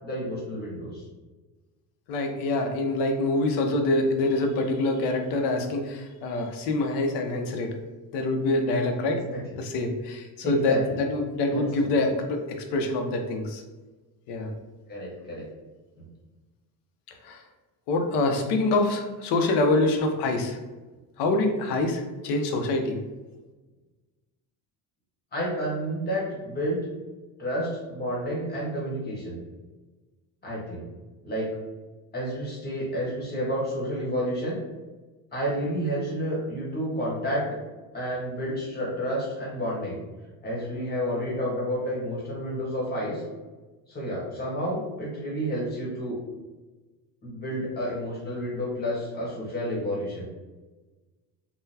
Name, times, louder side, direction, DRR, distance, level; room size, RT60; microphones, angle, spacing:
voice 1, 0.0-1.0 9.1-9.4 10.4-10.8 11.5-11.9 14.9-15.5 16.0-16.1 25.3-26.8 27.4-29.4 30.4-30.8 31.2-31.6 32.1-34.6 35.3-37.6 37.9-40.0 40.4-43.2 43.9-46.2 47.2-50.3, equal, 25° left, -4 dB, 1.2 m, -30 dB
voice 2, 2.1-7.8 8.1-9.2 9.6-13.6 14.3-14.5 17.2-17.4 17.9-20.6 21.2-23.0, left 2 dB, 75° left, 4 dB, 0.7 m, -25 dB
3.8 x 2.2 x 2.7 m, 1.2 s
cardioid pair, 145°, 40 cm